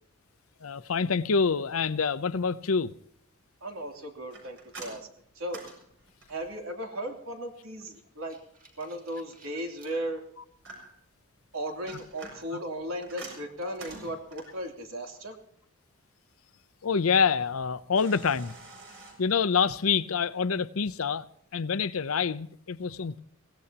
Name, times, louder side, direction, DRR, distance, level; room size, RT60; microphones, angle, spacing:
voice 1, 0.6-2.9 16.8-18.5 19.2-21.2 21.5-23.2, left 5 dB, 80° left, 0.7 m, -26 dB
voice 2, 3.6-5.1 5.3-5.6 6.3-8.4 8.8-10.2 11.5-15.3, right 1 dB, 80° right, 3.0 m, -36 dB
sound 1, 4.3-6.6 9.9-11.1 11.7-14.6 17.9-19.1, right 3 dB, 60° right, 6.4 m, -47 dB
sound 2, 7.9-9.9 10.6-10.7 12.4-12.6 13.2-13.3 13.6-14.3, right 1 dB, 40° right, 3.5 m, -53 dB
23.5 x 17.5 x 2.9 m
head